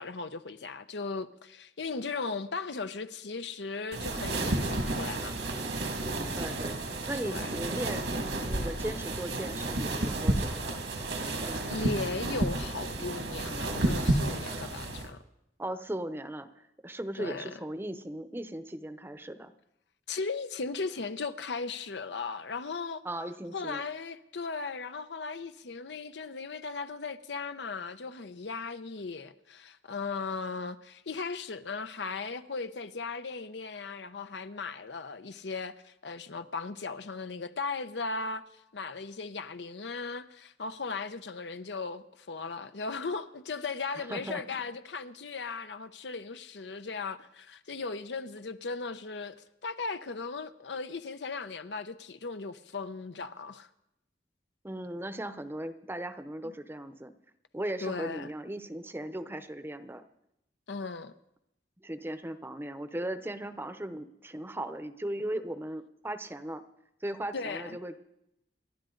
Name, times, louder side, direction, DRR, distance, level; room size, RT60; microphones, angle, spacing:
voice 1, 0.0-5.3 7.2-7.5 11.3-15.2 17.2-17.5 20.1-23.0 23.5-38.4 38.7-49.4 49.6-53.7 56.4-56.5 57.8-58.3 60.7-61.1 67.3-67.8, left 4 dB, 80° left, 0.8 m, -37 dB
sound 1, 3.9-15.1, right 2 dB, 85° right, 2.1 m, -31 dB
voice 2, 6.4-6.7 7.1-10.7 15.6-19.5 23.0-23.8 44.0-44.4 54.6-57.1 57.5-60.0 61.8-66.6 67.0-68.0, right 1 dB, 15° right, 0.7 m, -37 dB
28.5 x 12.0 x 3.9 m
head